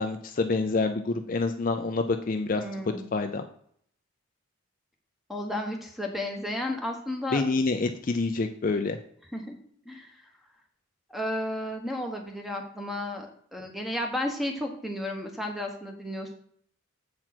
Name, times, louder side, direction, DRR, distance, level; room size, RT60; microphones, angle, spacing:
voice 1, 0.0-2.6 3.1-3.4 7.3-9.0, left 3 dB, 40° left, 6 dB, 0.4 m, -27 dB
voice 2, 2.5-3.0 5.3-7.4 9.3-9.6 9.8-10.2 11.1-16.4, left 1 dB, ahead, 3 dB, 1.1 m, -33 dB
7.5 x 4.5 x 5.9 m, 0.63 s
head